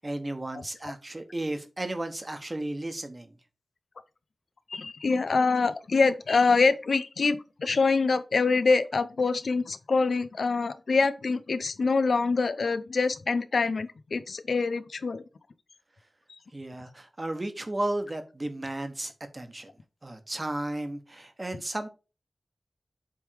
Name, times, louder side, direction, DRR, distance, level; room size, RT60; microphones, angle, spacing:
voice 1, 0.0-3.3 16.5-19.7 20.0-21.9, right 1 dB, 30° right, 1.2 m, -34 dB
voice 2, 4.7-15.2, left 4 dB, 80° left, 0.6 m, -25 dB
7.8 x 3.6 x 4.7 m
wide cardioid pair, 95°, 0 cm